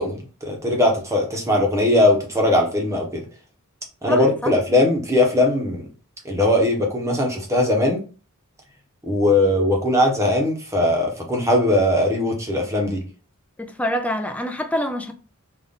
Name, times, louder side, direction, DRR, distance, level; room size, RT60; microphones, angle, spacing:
voice 1, 0.0-3.2 4.0-5.9 6.2-8.0 9.1-13.0, left 1 dB, 15° right, 0.9 m, -20 dB
voice 2, 4.1-4.5 13.6-15.1, equal, 5° left, 0.4 m, -26 dB
3.9 x 2.5 x 3.5 m
head